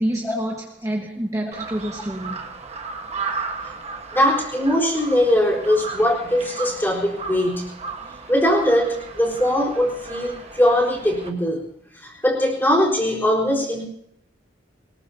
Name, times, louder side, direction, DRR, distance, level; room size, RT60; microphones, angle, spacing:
voice 1, 0.0-2.5, right 1 dB, 20° right, -1 dB, 1.5 m, -27 dB
Crow, 1.5-11.3, right 4 dB, 35° right, 1.4 m, -34 dB
voice 2, 4.1-7.7 8.3-11.6 11.9-13.8, equal, 10° left, -3 dB, 4.2 m, -21 dB
22.0 x 20.5 x 2.8 m, 0.72 s
head